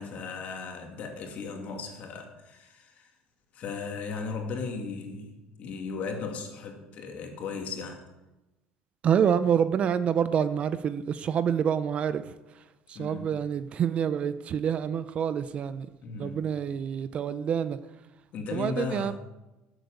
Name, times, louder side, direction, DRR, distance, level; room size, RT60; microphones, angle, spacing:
voice 1, 0.0-3.1 3.5-8.0 12.9-13.3 16.0-16.5 18.3-19.1, left 4 dB, 40° left, 3 dB, 2.5 m, -36 dB
voice 2, 9.0-12.2 12.9-15.9 16.2-17.8 18.5-19.1, right 8 dB, 35° right, 13 dB, 0.5 m, -27 dB
12.0 x 8.0 x 7.9 m, 1.1 s
cardioid pair, 160°, 4 cm